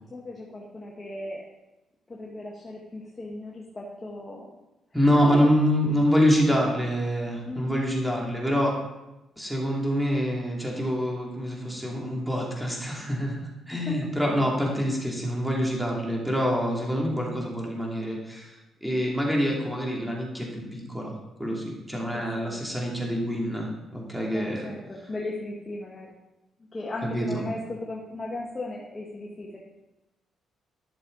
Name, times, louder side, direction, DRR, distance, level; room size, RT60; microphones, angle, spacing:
voice 1, 0.1-1.4 2.1-4.4 5.1-5.5 7.5-8.0 13.7-14.0 14.8-14.9 22.1-22.2 22.5-22.6 24.3-26.2 26.7-29.6, left 2 dB, 25° left, -3 dB, 1.7 m, -36 dB
voice 2, 4.9-8.7 9.4-18.5 18.8-21.1 21.4-24.7 27.1-27.4, equal, 5° right, -2 dB, 2.7 m, -26 dB
12.0 x 6.7 x 4.0 m, 0.99 s
cardioid pair, 90°, 0 cm